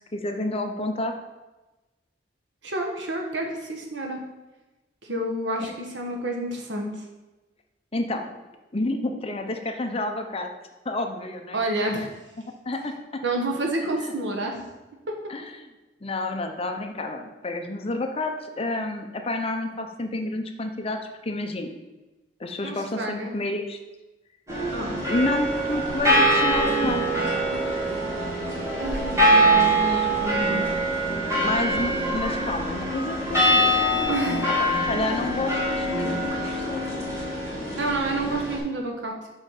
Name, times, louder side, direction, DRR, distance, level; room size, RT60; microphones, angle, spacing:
voice 1, 0.1-1.1 5.6-5.7 7.9-8.4 8.7-10.5 10.8-11.6 12.6-13.2 14.0-14.1 15.3-15.7 16.0-21.8 22.4-23.8 25.0-27.1 29.3-30.1 31.4-33.8 34.6-36.8, left 2 dB, 35° left, 5 dB, 0.7 m, -30 dB
voice 2, 2.6-4.2 5.0-7.0 11.5-12.1 13.2-14.7 22.6-23.3 24.7-25.0 28.8-30.7 34.1-34.5 37.8-39.3, right 1 dB, 85° right, 2 dB, 1.4 m, -29 dB
sound 1, 24.5-38.6, right 1 dB, 15° right, 2.2 m, -24 dB
5.7 x 5.5 x 5.8 m, 1.1 s
head